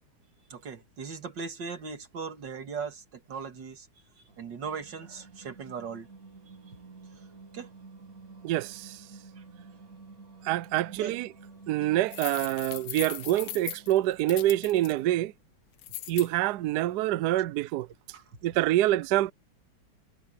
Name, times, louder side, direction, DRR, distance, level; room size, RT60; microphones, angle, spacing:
voice 1, 0.5-3.9 4.4-6.1 7.5-7.7 10.9-11.2 11.8-11.9 18.1-18.2, right 5 dB, 55° right, 2.5 m, -38 dB
Singing, 4.3-15.4, right 4 dB, 40° right, 3.2 m, -51 dB
voice 2, 8.4-8.9 10.5-11.3 11.7-15.3 16.1-17.9 18.4-19.3, right 15 dB, 85° right, 0.8 m, -26 dB
sound 1, 12.1-14.9 15.8-16.3, left 13 dB, 70° left, 1.6 m, -38 dB
omnidirectional pair, 2.4 m